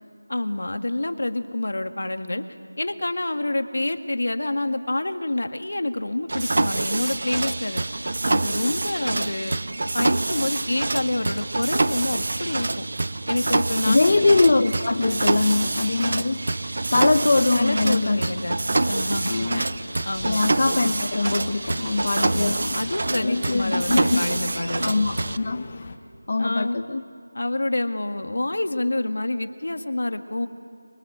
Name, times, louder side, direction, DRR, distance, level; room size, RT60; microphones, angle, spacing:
voice 1, 0.3-2.4 2.8-7.8 8.3-9.6 9.9-12.9 13.3-14.2 17.6-19.8 20.0-20.4 22.2-24.9 26.4-26.8 27.4-30.5, left 2 dB, 65° left, 8 dB, 1.9 m, -27 dB
Mechanisms, 6.3-25.4, right 2 dB, 45° right, 0.8 m, -26 dB
voice 2, 13.9-18.3 19.3-19.6 20.2-22.8 23.2-24.2 24.8-25.9 26.3-27.0, left 3 dB, 40° left, 8 dB, 0.8 m, -22 dB
sound 1, 18.9-26.0, left 3 dB, 25° left, 1.4 m, -40 dB
28.5 x 23.0 x 8.2 m, 2.4 s
figure-of-eight pair, 175°, 0 cm